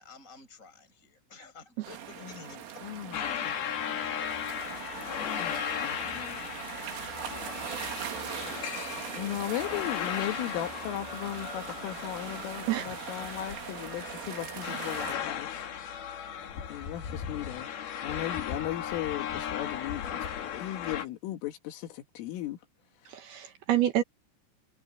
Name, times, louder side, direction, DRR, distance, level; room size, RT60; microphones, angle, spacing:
voice 1, 0.0-2.8 7.7-8.1, left 4 dB, 15° left, 8.2 m, -53 dB
sound 1, 1.8-15.2, right 9 dB, 90° right, 5.2 m, -41 dB
voice 2, 2.8-3.6 5.4-6.4 9.1-15.6 16.7-17.7 18.0-22.6, left 13 dB, 90° left, 4.5 m, -37 dB
sound 2, 3.1-21.1, left 8 dB, 55° left, 3.8 m, -36 dB
voice 3, 12.7-13.1 23.1-24.0, right 13 dB, 70° right, 2.5 m, -28 dB
omnidirectional pair, 5.6 m